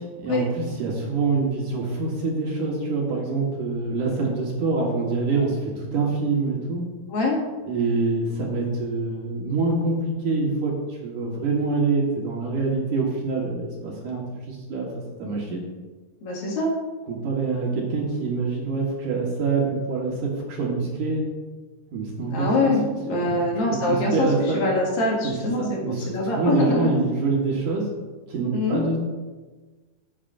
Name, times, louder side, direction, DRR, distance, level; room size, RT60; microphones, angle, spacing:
voice 1, 0.2-6.8 7.7-14.9 15.2-15.6 17.1-21.2 21.9-22.7 23.1-23.4 23.7-24.7 25.2-27.9 28.3-29.0, right 3 dB, 65° right, -2 dB, 2.5 m, -25 dB
voice 2, 16.2-16.7 22.3-24.3 24.5-26.9 28.5-28.8, left 2 dB, 65° left, -3 dB, 3.5 m, -24 dB
15.5 x 7.6 x 2.5 m, 1.3 s
omnidirectional pair, 4.4 m